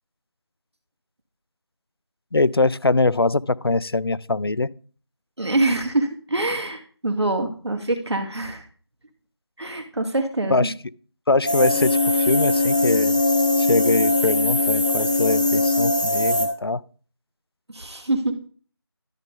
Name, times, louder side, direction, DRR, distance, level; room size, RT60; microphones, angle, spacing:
voice 1, 2.3-4.7 10.5-10.7 11.3-13.2 13.6-16.8, left 3 dB, 60° left, 0.5 m, -22 dB
voice 2, 5.4-8.7 9.6-10.7 17.7-18.5, right 2 dB, 75° right, 2.1 m, -25 dB
sound 1, 11.5-16.5, left 2 dB, 20° left, 0.7 m, -20 dB
13.0 x 5.5 x 3.7 m
figure-of-eight pair, 175°, 14 cm